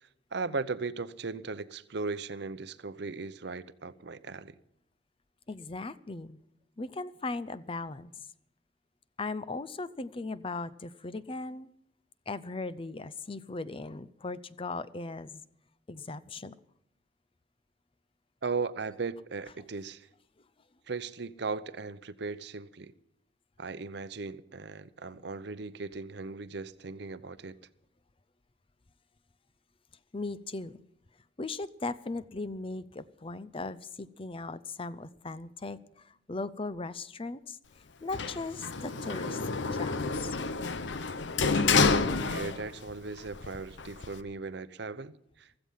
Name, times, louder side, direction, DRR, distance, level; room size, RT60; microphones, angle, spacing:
voice 1, 0.3-4.6 18.4-20.1 20.9-22.9 23.6-27.5 41.5-45.5, right 4 dB, 65° right, 0.7 m, -37 dB
voice 2, 5.5-6.4 6.8-8.1 9.2-11.7 12.3-15.4 15.9-16.5 30.1-30.8 31.4-37.6 38.0-39.4 39.7-40.4, left 3 dB, 30° left, 0.6 m, -38 dB
Sliding door, 38.1-42.9 43.3-44.2, left 4 dB, 85° left, 0.8 m, -29 dB
16.0 x 14.0 x 5.7 m
head